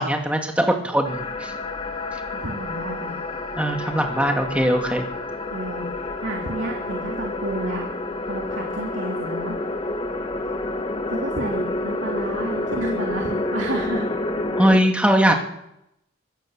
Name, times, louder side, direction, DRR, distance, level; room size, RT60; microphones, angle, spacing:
voice 1, 0.0-1.5 3.6-5.1 14.6-15.3, equal, 5° right, 4 dB, 2.4 m, -20 dB
sound 1, 1.0-14.8, left 2 dB, 25° left, 1.7 m, -29 dB
voice 2, 2.3-3.2 5.5-7.9 8.3-9.6 11.1-14.2, right 1 dB, 65° right, 0 dB, 3.1 m, -31 dB
24.5 x 17.0 x 7.5 m, 0.83 s
head